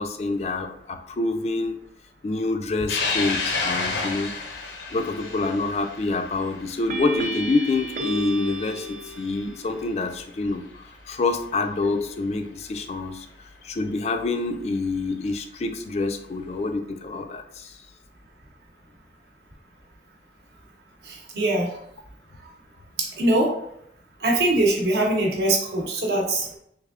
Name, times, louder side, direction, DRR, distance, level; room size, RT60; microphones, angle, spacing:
voice 1, 0.0-1.8 2.2-4.4 4.9-13.3 13.6-17.8, left 3 dB, 35° left, 7 dB, 0.3 m, -27 dB
sound 1, 2.9-9.6 10.0-10.1 11.3-11.4 13.6-13.7 15.1-15.4, left 4 dB, 85° left, 0.7 m, -31 dB
sound 2, 5.2-5.7 6.9-9.7, right 2 dB, 45° right, 0.4 m, -33 dB
voice 2, 21.0-21.7 23.0-23.5 24.2-26.5, right 1 dB, 65° right, -1 dB, 0.9 m, -22 dB
3.4 x 3.3 x 2.4 m, 0.73 s
head